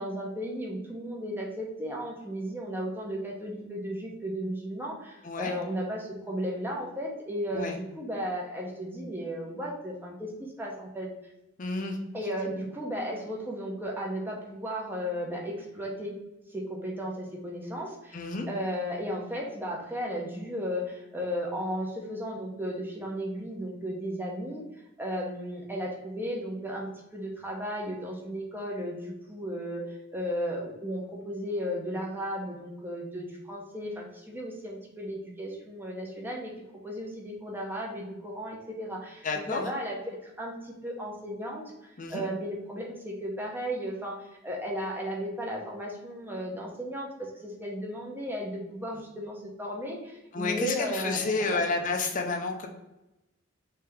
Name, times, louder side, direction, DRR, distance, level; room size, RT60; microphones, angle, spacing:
voice 1, 0.0-7.7 8.0-11.1 12.1-16.1 16.5-24.6 25.0-36.5 36.8-44.2 44.4-51.6, equal, 10° right, -2 dB, 0.7 m, -35 dB
voice 2, 5.2-5.6 7.5-7.8 11.6-12.0 18.1-18.5 39.2-39.6 42.0-42.3 50.3-52.7, left 3 dB, 40° left, 4 dB, 0.5 m, -30 dB
3.3 x 2.8 x 3.4 m, 0.95 s
head